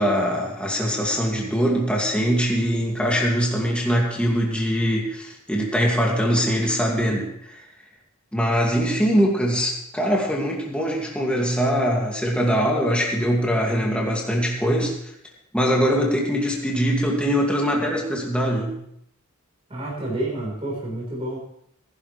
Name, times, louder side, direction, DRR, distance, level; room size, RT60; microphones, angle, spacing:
voice 1, 0.0-7.6 8.3-15.0 15.5-18.8, equal, 5° left, -2 dB, 2.3 m, -22 dB
voice 2, 19.7-21.4, right 1 dB, 25° right, -4 dB, 4.8 m, -29 dB
20.0 x 11.5 x 3.4 m, 0.73 s
head